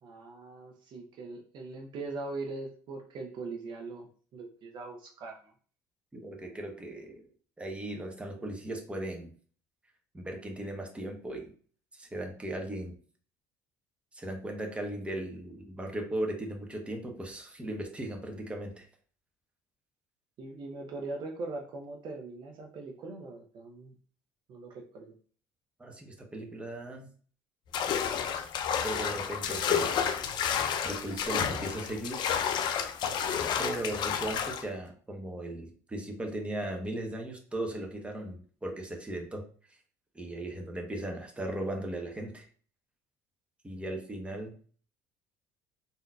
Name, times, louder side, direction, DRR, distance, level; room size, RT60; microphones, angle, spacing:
voice 1, 0.0-5.5 20.4-23.9 24.5-25.1, right 3 dB, 55° right, 2 dB, 0.7 m, -41 dB
voice 2, 6.1-7.3 7.6-9.3 10.1-11.5 11.9-12.9 14.1-18.8 25.8-27.1 28.8-30.1 30.8-32.3 33.6-39.4 40.1-42.5 43.6-44.6, right 1 dB, 15° right, 1 dB, 0.9 m, -37 dB
sound 1, 27.7-34.6, left 8 dB, 55° left, 0.4 m, -30 dB
3.6 x 2.7 x 2.3 m, 0.43 s
supercardioid pair, 75°, 9 cm